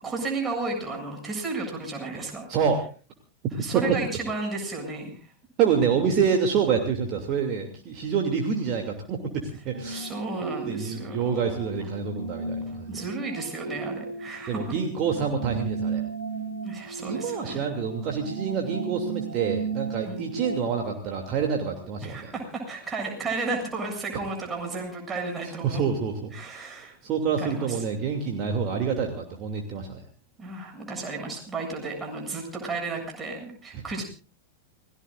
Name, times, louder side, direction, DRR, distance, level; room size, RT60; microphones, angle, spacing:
voice 1, 0.0-2.5 3.6-5.2 9.9-11.5 11.8-11.9 12.9-14.7 16.6-17.7 20.0-20.3 22.0-25.8 26.3-27.0 27.4-27.8 30.4-34.0, right 3 dB, 15° right, 2 dB, 7.5 m, -33 dB
voice 2, 2.5-2.9 3.7-4.0 5.6-10.1 10.4-13.0 14.5-16.0 17.0-22.3 25.6-30.0 33.7-33.8, right 6 dB, 35° right, 3 dB, 2.8 m, -27 dB
sound 1, 9.7-20.9, right 4 dB, 75° right, 4.2 m, -35 dB
29.0 x 18.5 x 2.6 m, 0.36 s
figure-of-eight pair, 90°, 0 cm